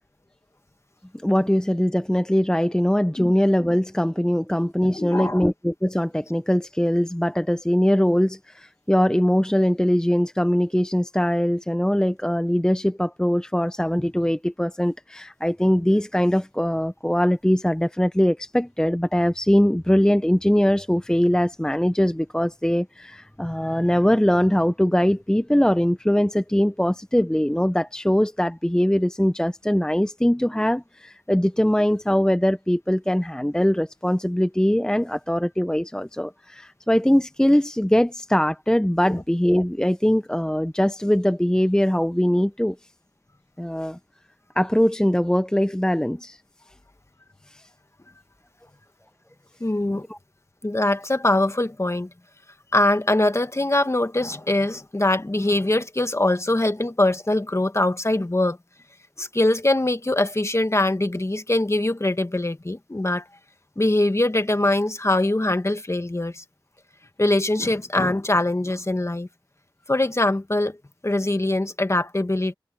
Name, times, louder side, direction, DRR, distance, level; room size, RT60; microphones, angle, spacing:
voice 1, 1.2-42.8 43.6-44.0 44.6-46.4 47.5-47.6 50.1-50.2, equal, 10° left, 0.8 m, -21 dB
voice 2, 4.9-5.4 39.1-39.2 49.6-50.0 50.6-52.1 52.7-58.6 59.2-63.3 63.8-66.4 67.2-69.3 69.9-70.8 71.0-72.5, left 1 dB, 35° left, 1.7 m, -22 dB
wide cardioid pair, 40°, 8 cm